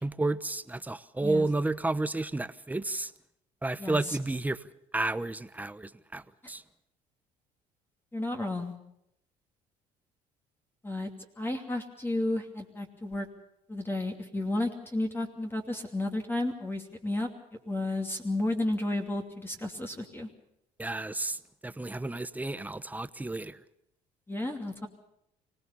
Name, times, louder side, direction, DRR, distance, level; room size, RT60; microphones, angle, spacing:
voice 1, 0.0-3.1 3.6-4.6 4.9-6.2 6.5-6.6 20.8-21.4 21.6-23.6, right 2 dB, 10° right, 14 dB, 0.9 m, -31 dB
voice 2, 3.8-4.2 8.1-8.7 10.8-11.1 11.4-13.3 13.7-17.3 17.7-20.3 24.3-24.9, left 2 dB, 15° left, 2 dB, 2.7 m, -32 dB
25.0 x 18.0 x 6.9 m, 0.77 s
supercardioid pair, 90°, 16 cm